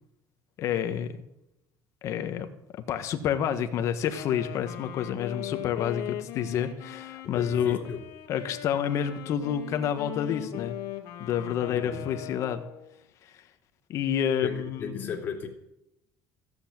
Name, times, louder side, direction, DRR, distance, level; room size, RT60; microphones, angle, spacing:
voice 1, 0.6-1.2 2.0-2.5 2.7-7.8 8.3-10.8 11.2-12.6 13.2-13.4 13.9-15.1, left 9 dB, 50° left, 8 dB, 1.4 m, -29 dB
Wind instrument woodwind instrument, 4.0-13.0, left 13 dB, 65° left, 2.2 m, -39 dB
voice 2, 7.3-8.0 11.7-12.1 14.4-15.5, left 5 dB, 30° left, 1 dB, 2.9 m, -35 dB
15.5 x 8.2 x 8.8 m, 0.87 s
cardioid pair, 165°, 7 cm